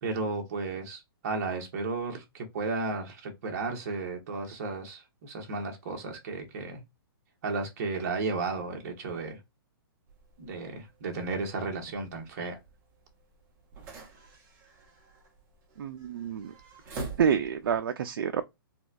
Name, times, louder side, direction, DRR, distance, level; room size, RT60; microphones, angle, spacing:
voice 1, 0.0-6.8 7.4-9.4 10.4-12.6, right 3 dB, 40° right, 1.2 m, -34 dB
sound 1, 10.1-17.8, right 3 dB, 15° right, 0.8 m, -46 dB
voice 2, 15.8-16.5 17.2-18.4, right 7 dB, 65° right, 0.4 m, -28 dB
4.1 x 2.3 x 2.4 m
hypercardioid pair, 165°, 13 cm